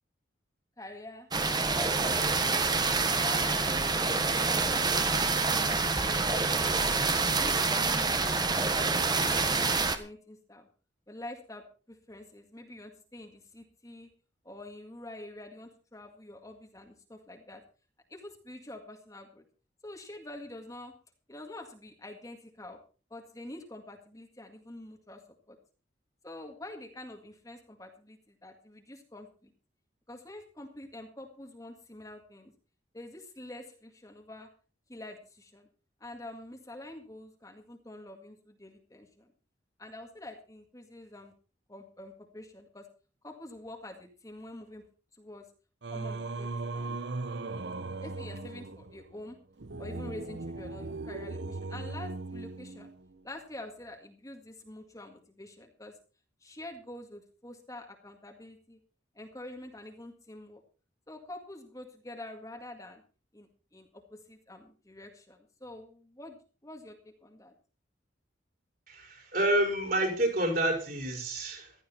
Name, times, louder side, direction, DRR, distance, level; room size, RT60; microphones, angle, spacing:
voice 1, 0.8-1.3 2.4-2.5 3.1-4.0 4.3-7.0 7.4-8.6 8.9-10.7 11.1-14.1 14.4-17.6 18.1-19.4 19.8-20.9 21.3-22.8 23.1-25.2 25.5-25.6 26.2-29.5 30.1-32.5 32.9-34.5 34.9-35.7 36.0-39.3 39.8-41.3 41.7-42.9 43.2-44.8 45.2-45.5 45.9-47.0 48.0-49.4 49.8-52.9 53.2-55.9 56.4-58.8 59.1-60.6 61.1-63.0 63.3-66.4 66.6-67.5, left 1 dB, 20° left, 3 dB, 1.9 m, -46 dB
sound 1, 1.3-10.0, right 4 dB, 20° right, 1.3 m, -27 dB
Singing, 45.8-53.2, right 3 dB, 65° right, 0.9 m, -38 dB
voice 2, 68.9-71.7, right 1 dB, 50° right, 3 dB, 5.4 m, -28 dB
15.5 x 13.0 x 4.3 m, 0.36 s
head